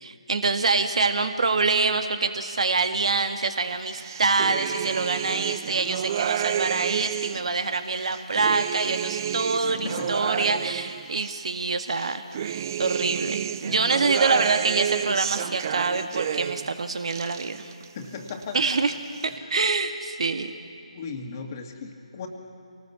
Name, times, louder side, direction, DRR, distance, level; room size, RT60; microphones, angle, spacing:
voice 1, 0.0-17.7 18.5-18.9 19.2-20.5, right 4 dB, 60° right, 7 dB, 1.8 m, -25 dB
sound 1, 3.9-7.5 8.0-11.4 11.9-16.7 17.0-17.9 18.2-18.9, right 9 dB, 30° right, 0.5 m, -30 dB
voice 2, 9.7-10.1 17.9-18.8 20.9-22.3, left 5 dB, 30° left, 3 dB, 2.1 m, -36 dB
26.0 x 19.5 x 7.0 m, 2.4 s
figure-of-eight pair, 150°, 4 cm